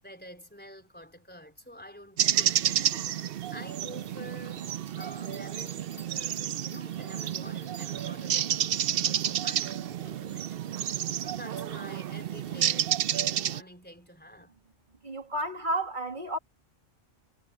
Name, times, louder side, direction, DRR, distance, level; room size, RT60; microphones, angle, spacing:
voice 1, 0.0-3.1 3.5-4.7 5.0-10.6 11.1-14.5, equal, 10° left, 4.5 m, -48 dB
sound 1, 2.2-13.6, right 10 dB, 60° right, 0.7 m, -30 dB
Bell, 4.7-9.0 9.5-9.6, right 1 dB, 75° left, 4.1 m, -53 dB
voice 2, 15.0-16.4, right 1 dB, 40° right, 2.2 m, -31 dB
omnidirectional pair, 1.3 m